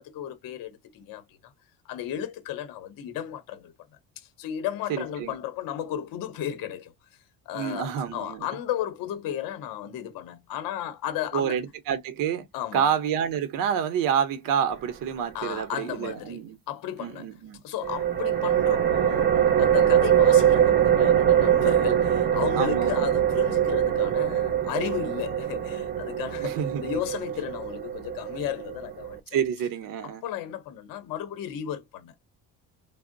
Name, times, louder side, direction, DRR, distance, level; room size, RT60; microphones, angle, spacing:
voice 1, 0.0-1.5 1.8-3.7 4.2-6.9 7.5-11.6 12.5-12.9 15.3-17.3 17.6-29.4 30.2-32.1, left 11 dB, 60° left, 0.7 m, -34 dB
voice 2, 4.9-5.3 7.5-8.5 11.3-12.5 12.7-16.6 17.0-17.6 22.5-23.1 26.4-26.9 29.3-30.2, right 8 dB, 60° right, 0.7 m, -28 dB
sound 1, 17.8-29.2, right 9 dB, 25° right, 0.4 m, -23 dB
3.6 x 2.0 x 2.5 m
cardioid pair, 160°, 39 cm